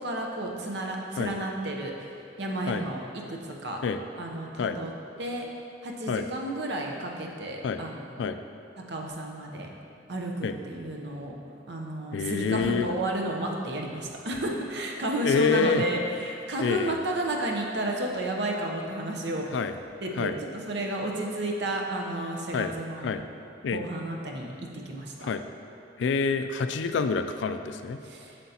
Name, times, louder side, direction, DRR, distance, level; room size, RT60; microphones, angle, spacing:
voice 1, 0.0-1.9 2.4-3.8 4.2-4.9 5.2-5.5 5.8-8.0 8.9-9.7 10.1-11.4 11.7-19.5 20.0-20.3 20.7-23.1 23.7-24.5 24.9-25.3 28.0-28.4, right 1 dB, 65° right, 0 dB, 0.8 m, -32 dB
voice 2, 12.1-12.9 15.2-15.8 16.6-17.0 19.5-19.7 20.2-20.3 22.5-22.7 23.0-23.2 23.6-23.8 25.2-25.4 26.0-28.0, left 5 dB, 80° left, 9 dB, 0.3 m, -27 dB
7.6 x 6.8 x 2.9 m, 2.7 s
head